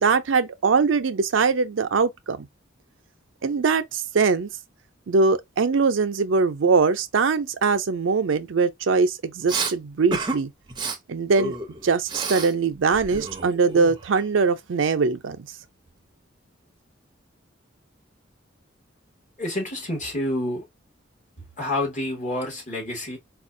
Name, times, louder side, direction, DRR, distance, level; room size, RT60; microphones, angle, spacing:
voice 1, 0.0-2.5 3.4-4.5 5.1-10.5 11.1-11.6 11.8-15.5, right 4 dB, 85° right, 0.5 m, -22 dB
Respiratory sounds, 9.5-9.7 10.1-10.4 10.7-11.0 11.4-12.5 12.8-14.2, right 3 dB, 25° right, 0.6 m, -30 dB
voice 2, 19.4-20.6 21.6-23.2, left 1 dB, 40° left, 1.7 m, -28 dB
4.2 x 2.3 x 2.6 m
head